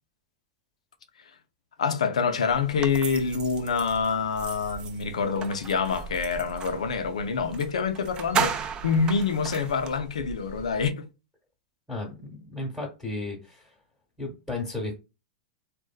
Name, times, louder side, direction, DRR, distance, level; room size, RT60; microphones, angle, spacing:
voice 1, 1.8-11.1, left 5 dB, 85° left, 0.4 m, -26 dB
sound 1, 2.5-10.9, right 2 dB, 45° right, 0.7 m, -46 dB
sound 2, 2.8-6.8 7.5-7.7 7.9-10.0, right 7 dB, 25° right, 0.3 m, -34 dB
voice 2, 11.9-13.7 14.2-15.0, left 2 dB, ahead, 0.8 m, -34 dB
2.6 x 2.1 x 2.3 m
hypercardioid pair, 115°, 3 cm